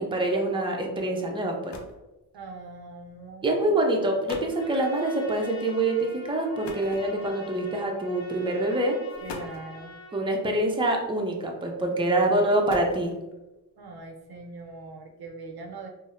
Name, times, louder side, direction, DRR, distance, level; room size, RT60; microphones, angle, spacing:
voice 1, 0.0-1.8 3.4-9.0 10.1-13.1, right 1 dB, 10° right, 1 dB, 0.5 m, -25 dB
sound 1, 1.5-2.1 3.1-3.3 3.9-4.0 4.3-4.6 6.6-7.5 8.4-8.6 9.1-9.8 11.0-11.5 12.3-13.4, left 4 dB, 90° left, 0.5 m, -42 dB
voice 2, 2.3-4.0 9.2-10.0 11.9-12.7 13.8-15.9, right 3 dB, 70° right, 2 dB, 0.6 m, -42 dB
Trumpet, 4.5-10.3, left 1 dB, 35° left, 1.0 m, -46 dB
3.8 x 2.0 x 2.5 m, 1.0 s
cardioid pair, 55°, 40 cm